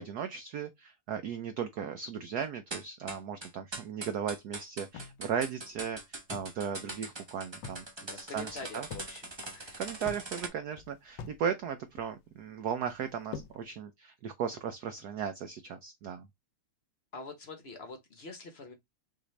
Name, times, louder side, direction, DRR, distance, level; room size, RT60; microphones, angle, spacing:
voice 1, 0.0-7.8 8.1-8.9 9.8-16.3, right 7 dB, 85° right, 0.8 m, -36 dB
sound 1, 2.7-10.5, right 2 dB, 45° right, 0.3 m, -42 dB
sound 2, 4.9-6.6 6.9-7.0 7.4-7.9 8.3-9.1 9.4-11.4 11.7-12.4 12.9-13.6, left 6 dB, 70° left, 1.2 m, -45 dB
voice 2, 8.0-9.8 17.1-18.7, left 4 dB, 45° left, 0.9 m, -45 dB
6.0 x 2.6 x 3.2 m
omnidirectional pair, 2.4 m